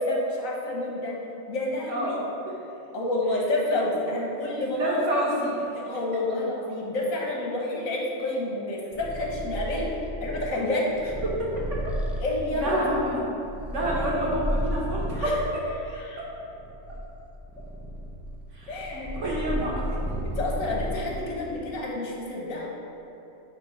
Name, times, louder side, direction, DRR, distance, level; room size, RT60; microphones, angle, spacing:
voice 1, 0.1-1.1 1.5-2.2 2.9-5.0 5.9-9.9 10.2-11.1 12.2-12.8 15.2-15.3 15.9-16.2 18.7-19.1 20.4-22.7, left 2 dB, 75° left, -3 dB, 1.6 m, -29 dB
voice 2, 4.5-5.8 11.2-11.9 12.5-13.3 13.7-15.6 16.2-16.3 18.5-19.8, right 1 dB, 60° right, -5 dB, 1.7 m, -28 dB
Purr, 8.9-15.4 16.1-21.3, equal, ahead, 0.4 m, -33 dB
9.1 x 3.5 x 5.1 m, 2.9 s
omnidirectional pair, 1.4 m